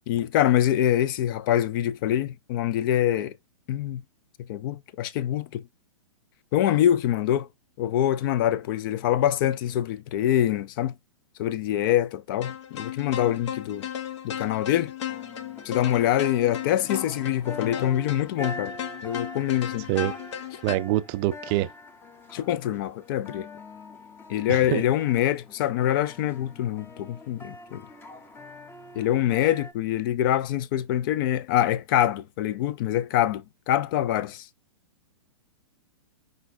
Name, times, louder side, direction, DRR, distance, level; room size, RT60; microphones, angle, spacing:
voice 1, 0.1-3.4 3.7-4.0 4.5-5.6 6.5-7.5 7.8-10.9 11.4-13.9 14.2-14.9 15.6-18.8 19.0-19.9 22.3-23.5 24.3-27.9 28.9-34.5, left 11 dB, 40° left, 0.4 m, -25 dB
sound 1, 12.4-20.8, left 10 dB, 60° left, 0.8 m, -36 dB
sound 2, 15.1-29.7, left 2 dB, 15° left, 0.7 m, -43 dB
voice 2, 20.6-21.7 24.5-24.8, right 15 dB, 30° right, 0.4 m, -25 dB
4.9 x 3.9 x 2.6 m
hypercardioid pair, 115°, 17 cm